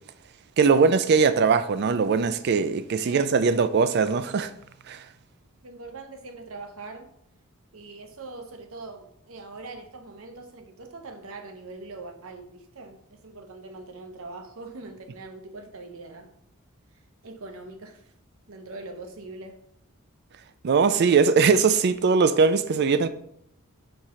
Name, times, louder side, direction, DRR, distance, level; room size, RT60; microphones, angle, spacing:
voice 1, 0.6-4.5 4.9-5.0 20.6-23.1, right 5 dB, 50° right, 0.4 m, -21 dB
voice 2, 3.0-3.6 5.6-7.1 7.7-16.3 17.2-18.1 18.5-19.6, right 3 dB, 70° right, 0.8 m, -42 dB
4.6 x 3.7 x 5.6 m
head